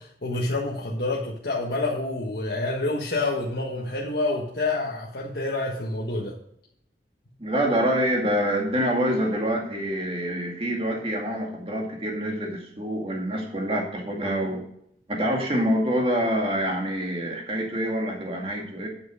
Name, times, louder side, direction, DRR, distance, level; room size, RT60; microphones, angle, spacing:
voice 1, 0.0-6.4, left 2 dB, 65° left, 1.4 m, -28 dB
voice 2, 7.4-14.6 15.1-18.9, equal, 30° right, 2.2 m, -26 dB
9.1 x 7.6 x 5.0 m
head